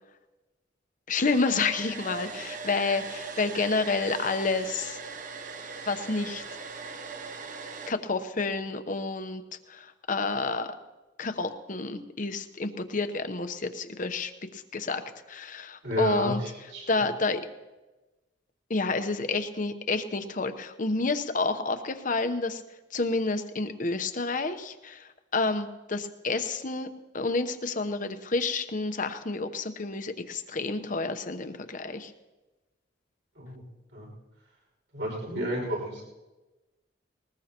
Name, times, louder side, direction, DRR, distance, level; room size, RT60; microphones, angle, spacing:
voice 1, 1.1-5.0 5.9-6.4 7.9-9.4 9.7-10.8 11.2-16.4 16.9-17.4 18.7-22.6 22.9-26.9 27.1-32.1, left 3 dB, 45° left, 8 dB, 0.9 m, -29 dB
Domestic sounds home sounds, 1.2-7.9, right 5 dB, 45° right, 1.0 m, -40 dB
voice 2, 15.8-16.8 33.4-33.6 33.9-34.1 34.9-36.0, equal, 65° right, -1 dB, 5.7 m, -31 dB
20.5 x 19.5 x 3.0 m, 1.1 s
head